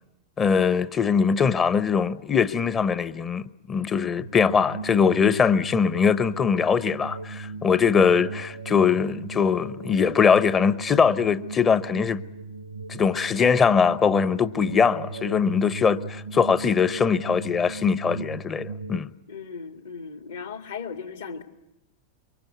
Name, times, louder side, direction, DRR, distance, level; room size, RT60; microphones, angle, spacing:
voice 1, 0.4-12.2 12.9-19.1, left 6 dB, 20° left, 0.9 m, -22 dB
sound 1, 4.2-19.0, right 4 dB, 75° right, 1.0 m, -37 dB
voice 2, 19.3-21.4, left 5 dB, 65° left, 2.2 m, -37 dB
24.5 x 23.5 x 9.4 m
figure-of-eight pair, 90°, 0 cm